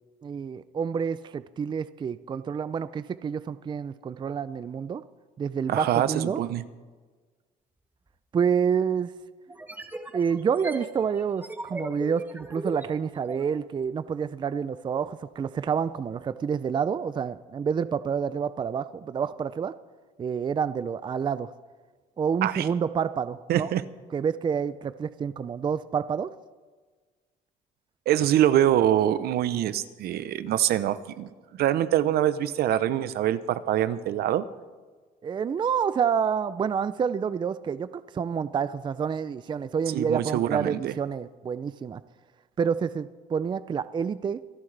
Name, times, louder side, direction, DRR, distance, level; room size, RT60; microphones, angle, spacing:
voice 1, 0.2-5.0 5.4-6.4 8.3-9.1 10.1-19.7 20.2-21.5 22.2-23.7 24.1-26.3 28.2-28.3 35.2-42.0 42.6-44.4, right 7 dB, 25° right, 14 dB, 0.4 m, -28 dB
voice 2, 5.7-6.6 22.4-22.7 23.5-23.8 28.1-31.3 31.6-34.5 39.9-40.9, right 12 dB, 70° right, 14 dB, 0.8 m, -24 dB
sound 1, 8.1-8.2 9.5-13.5, right 2 dB, 10° right, 1.5 m, -37 dB
25.5 x 11.0 x 3.4 m, 1.4 s
cardioid pair, 110°, 17 cm